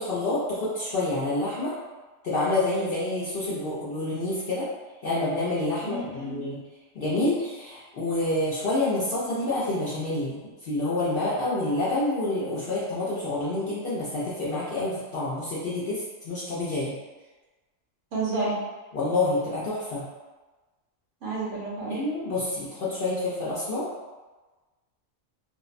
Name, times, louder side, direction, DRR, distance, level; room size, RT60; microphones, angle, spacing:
voice 1, 0.0-1.7 2.2-4.7 5.0-6.6 6.9-16.9 18.9-20.0 21.9-23.8, left 2 dB, 60° left, -9 dB, 0.6 m, -28 dB
voice 2, 5.8-6.4 18.1-18.6 21.2-22.0, right 3 dB, 70° right, -6 dB, 1.0 m, -30 dB
2.5 x 2.0 x 2.4 m, 1.2 s
omnidirectional pair, 1.4 m